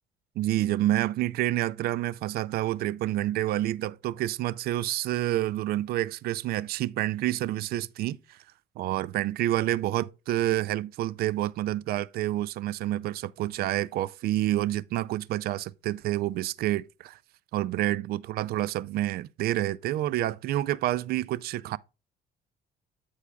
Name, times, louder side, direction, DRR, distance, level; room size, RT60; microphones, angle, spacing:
voice 1, 0.4-8.4 8.8-17.2 17.5-21.8, right 14 dB, 65° right, 0.4 m, -28 dB
14.0 x 4.8 x 2.3 m
cardioid pair, 110°, 17 cm